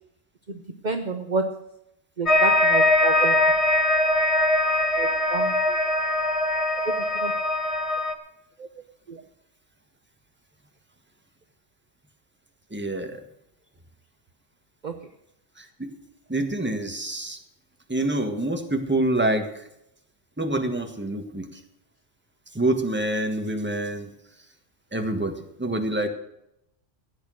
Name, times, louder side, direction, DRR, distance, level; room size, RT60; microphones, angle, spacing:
voice 1, 0.5-1.4 2.2-3.4 5.0-5.5 7.1-7.3 8.6-8.7 9.1-9.2 14.8-14.9, right 4 dB, 40° right, 5 dB, 1.0 m, -29 dB
sound 1, 2.3-8.1, left 1 dB, 30° left, 1.1 m, -21 dB
voice 2, 12.7-13.2 15.6-15.9 16.3-17.4 17.9-19.6 20.4-21.6 22.5-24.1 24.9-26.1, right 1 dB, 10° right, 5 dB, 1.5 m, -26 dB
15.0 x 9.0 x 6.4 m, 0.81 s
omnidirectional pair, 1.2 m